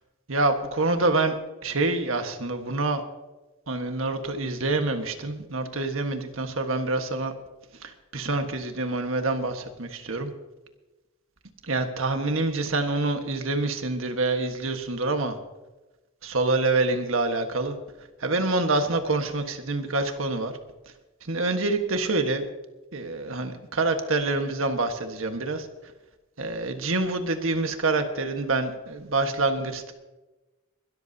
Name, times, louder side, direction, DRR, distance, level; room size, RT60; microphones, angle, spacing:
voice 1, 0.3-1.3 1.6-3.0 3.7-7.3 7.8-10.3 11.6-15.4 16.2-17.7 18.2-20.5 21.3-22.4 22.9-25.7 26.4-29.9, right 2 dB, 75° right, 6 dB, 1.5 m, -26 dB
22.0 x 13.0 x 2.9 m, 1.1 s
head